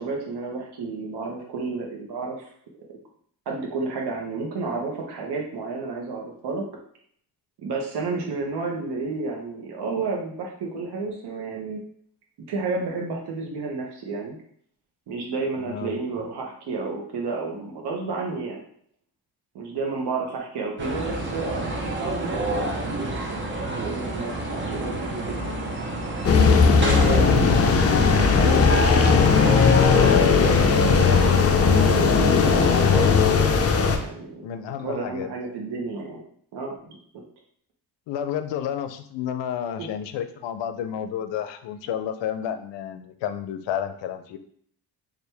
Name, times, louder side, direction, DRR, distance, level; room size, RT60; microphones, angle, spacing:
voice 1, 0.0-2.5 2.9-3.0 3.5-6.6 7.6-11.8 12.5-14.4 15.1-18.6 19.5-25.6 26.7-29.7 31.5-33.6 34.0-36.2 36.5-36.8 39.8-39.9, right 3 dB, 65° right, -1 dB, 0.9 m, -31 dB
sound 1, 20.8-31.3, right 2 dB, 25° right, 0.7 m, -30 dB
sound 2, 26.2-34.0, left 5 dB, 35° left, 0.5 m, -17 dB
voice 2, 34.4-35.3 38.1-44.4, left 9 dB, 85° left, 9 dB, 0.5 m, -31 dB
4.5 x 2.5 x 3.3 m, 0.62 s
cardioid pair, 115°, 43 cm